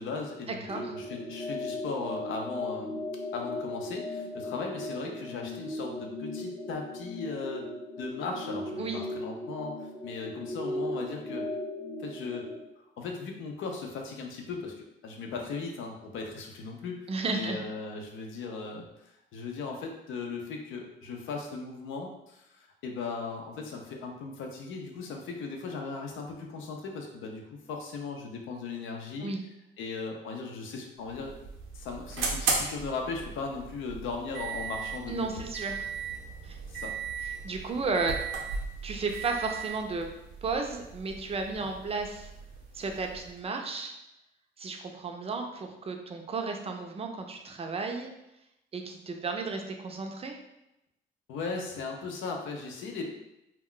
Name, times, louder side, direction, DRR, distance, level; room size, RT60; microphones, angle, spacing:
voice 1, 0.0-3.0 3.3-7.7 8.0-11.4 12.0-12.5 13.0-14.7 15.0-29.3 29.8-31.3 31.7-35.5 36.7-36.9 51.3-53.0, left 4 dB, 80° left, 2 dB, 0.6 m, -37 dB
sound 1, 0.7-12.6, left 1 dB, 15° left, 0.7 m, -37 dB
voice 2, 17.1-17.6 29.2-29.4 35.1-35.9 36.4-36.6 37.4-38.2 38.8-40.1 40.4-42.3 42.7-43.9 44.6-48.1 48.7-50.4, right 4 dB, 30° right, 3 dB, 0.5 m, -33 dB
sound 2, 31.0-43.4, right 4 dB, 90° right, 0.7 m, -37 dB
2.2 x 2.2 x 3.7 m, 0.87 s
cardioid pair, 90°, 20 cm